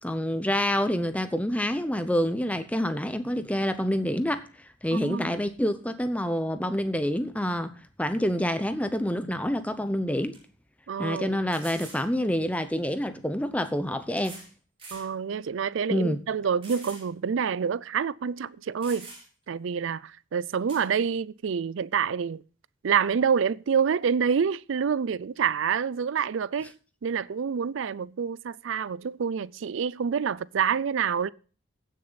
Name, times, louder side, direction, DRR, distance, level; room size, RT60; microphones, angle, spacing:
voice 1, 0.0-4.5 4.8-7.7 8.0-10.4 11.0-14.4 15.9-16.2, equal, 5° left, 0.7 m, -27 dB
voice 2, 4.9-5.4 10.9-11.4 14.9-19.1 19.5-22.4 22.8-26.7 27.0-31.3, right 6 dB, 70° right, 0.4 m, -27 dB
sound 1, 9.7-9.8 10.3-10.4 11.5-12.1 13.2-13.3 14.2-14.5 14.8-15.1 15.6-15.7 16.6-17.1 17.4-17.5 18.4-18.5 18.8-19.4 20.7-20.9, right 2 dB, 30° right, 5.1 m, -45 dB
15.5 x 6.5 x 4.0 m
head